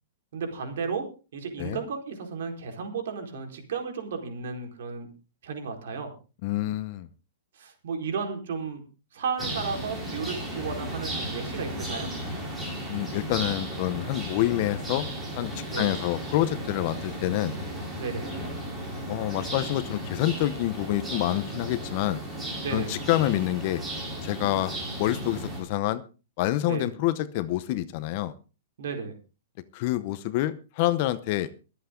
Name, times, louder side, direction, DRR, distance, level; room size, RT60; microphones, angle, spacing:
voice 1, 0.3-1.1 1.3-5.1 5.4-6.1 7.5-8.8 9.1-12.1 15.7-15.9 18.0-18.3 22.6-23.0 23.3-23.4 26.6-26.9 28.8-29.1, right 5 dB, 60° right, 4 dB, 4.4 m, -33 dB
voice 2, 6.4-7.1 12.9-15.1 15.4-17.6 19.1-22.2 22.7-23.8 24.2-26.0 26.4-28.3 29.7-31.5, left 15 dB, 35° left, 14 dB, 0.8 m, -27 dB
sound 1, 9.4-25.6, right 1 dB, 5° right, 3.6 m, -35 dB
23.5 x 8.2 x 3.8 m, 0.33 s
hypercardioid pair, 175°, 0 cm